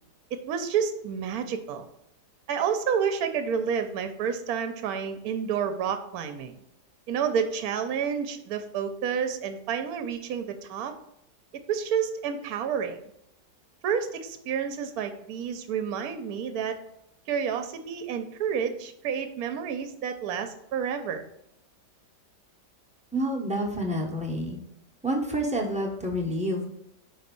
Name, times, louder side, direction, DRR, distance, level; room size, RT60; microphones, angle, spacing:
voice 1, 0.5-1.9 2.5-6.5 7.1-10.9 11.7-13.0 13.8-16.8 17.3-21.2, right 7 dB, 65° right, 8 dB, 1.1 m, -29 dB
voice 2, 23.1-24.6 25.0-26.7, equal, 5° right, -1 dB, 0.6 m, -28 dB
5.2 x 4.2 x 5.2 m, 0.77 s
omnidirectional pair, 1.9 m